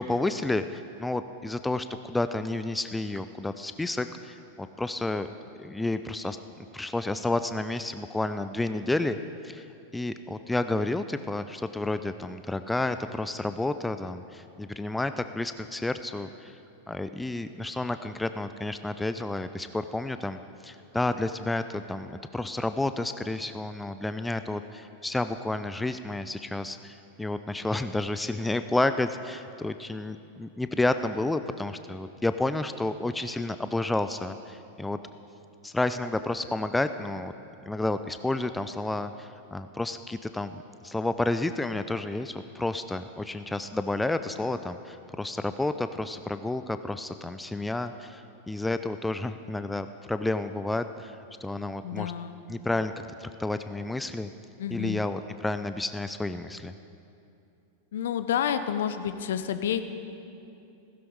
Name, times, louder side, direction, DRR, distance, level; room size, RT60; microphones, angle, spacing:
voice 1, 0.0-5.3 5.6-6.4 6.7-9.2 9.4-9.7 9.9-16.6 16.9-35.0 35.6-37.3 37.7-52.1 52.5-52.9 53.2-54.3 54.7-56.7, left 2 dB, 5° left, 10 dB, 0.4 m, -30 dB
voice 2, 51.8-52.4 54.6-55.0 57.9-59.8, left 9 dB, 60° left, 11 dB, 0.8 m, -29 dB
16.0 x 15.0 x 4.7 m, 2.7 s
figure-of-eight pair, 90°, 0 cm